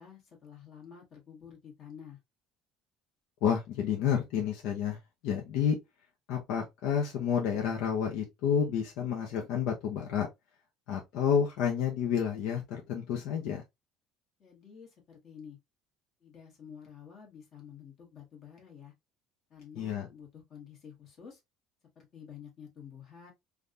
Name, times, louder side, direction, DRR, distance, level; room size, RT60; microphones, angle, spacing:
voice 1, 0.0-2.2 14.4-15.6 16.2-18.9 19.5-21.4 21.9-23.3, left 7 dB, 45° left, 1.6 m, -50 dB
voice 2, 3.4-5.0 5.2-5.8 6.3-10.3 10.9-13.6 19.7-20.1, left 8 dB, 75° left, 0.7 m, -30 dB
3.3 x 2.4 x 2.6 m
cardioid pair, 130°, 0 cm